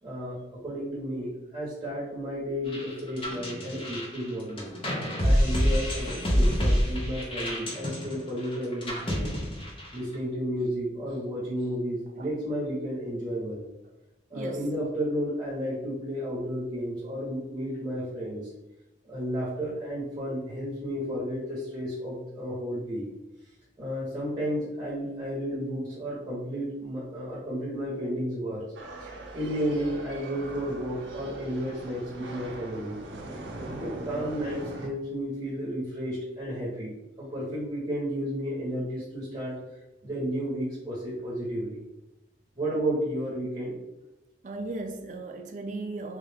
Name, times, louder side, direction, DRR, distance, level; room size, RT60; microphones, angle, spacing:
voice 1, 0.0-4.7 5.2-9.3 9.9-13.7 14.3-18.5 19.0-23.0 23.8-28.6 29.0-33.0 33.6-39.6 40.0-41.8 42.6-43.7, equal, 20° right, 0.9 m, -32 dB
sound 1, 2.7-10.1, equal, 30° left, 0.6 m, -27 dB
voice 2, 14.3-14.6 44.4-46.2, right 2 dB, 40° right, 0.4 m, -36 dB
sound 2, 28.8-34.9, right 2 dB, 85° right, 0.6 m, -41 dB
3.5 x 2.3 x 3.4 m
head